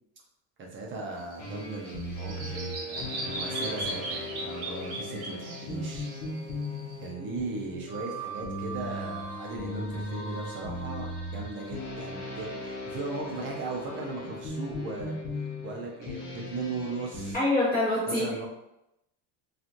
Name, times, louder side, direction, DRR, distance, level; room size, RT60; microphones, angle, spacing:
voice 1, 0.6-6.1 7.0-15.2 15.6-17.4 18.1-18.5, right 3 dB, 25° right, -1 dB, 0.5 m, -37 dB
Bird vocalization bird call bird song, 1.2-7.1, right 2 dB, 55° right, 0.8 m, -38 dB
sound 1, 1.4-17.3, left 1 dB, 55° left, 0.9 m, -37 dB
voice 2, 17.3-18.5, left 2 dB, 20° left, -9 dB, 1.0 m, -26 dB
2.9 x 2.4 x 2.5 m, 0.85 s
cardioid pair, 145°, 46 cm